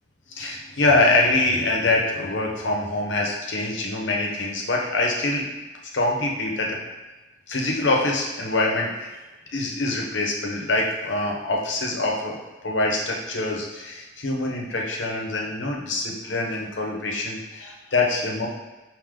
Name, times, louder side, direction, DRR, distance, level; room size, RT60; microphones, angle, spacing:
voice 1, 0.3-5.5 5.9-6.8 7.5-9.1 9.5-18.5, left 2 dB, 80° left, 0 dB, 0.8 m, -24 dB
5.0 x 2.7 x 3.7 m, 1.2 s
head